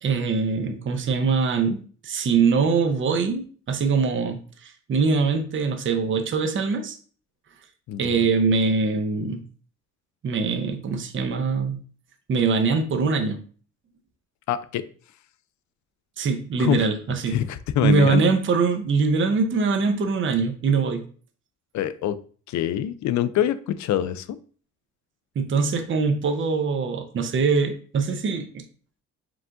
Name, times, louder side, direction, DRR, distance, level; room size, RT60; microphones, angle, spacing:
voice 1, 0.0-7.0 8.0-9.4 10.2-11.8 12.3-13.4 16.2-17.3 17.8-21.0 25.4-28.6, right 4 dB, 40° right, 6 dB, 0.7 m, -23 dB
voice 2, 14.5-14.8 16.6-16.8 17.3-18.2 21.7-22.2 22.5-24.4, left 11 dB, 70° left, 14 dB, 0.4 m, -25 dB
4.8 x 2.5 x 3.6 m, 0.42 s
cardioid pair, 90°, 30 cm